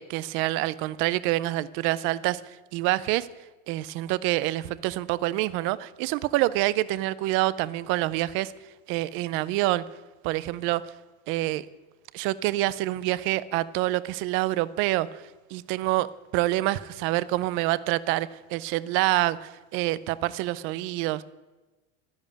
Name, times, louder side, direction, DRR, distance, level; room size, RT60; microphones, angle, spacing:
voice 1, 0.0-2.4 2.7-3.3 3.7-8.5 8.9-9.8 10.2-10.8 11.3-11.7 12.1-15.2 15.5-21.2, right 17 dB, 35° right, 18 dB, 0.4 m, -26 dB
12.5 x 10.5 x 8.5 m, 1.2 s
cardioid pair, 170°, 38 cm